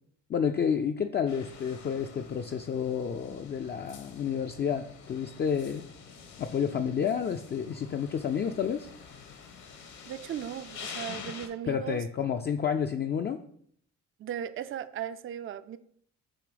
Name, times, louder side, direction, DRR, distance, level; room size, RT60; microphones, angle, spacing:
voice 1, 0.3-5.8 6.4-8.9 11.1-11.3 11.7-13.4, left 7 dB, 35° left, 0.4 m, -30 dB
sound 1, 1.3-11.5, left 6 dB, 70° left, 1.2 m, -47 dB
voice 2, 10.1-12.0 14.2-15.8, right 10 dB, 45° right, 0.4 m, -37 dB
6.9 x 3.1 x 5.0 m
cardioid pair, 90°, 30 cm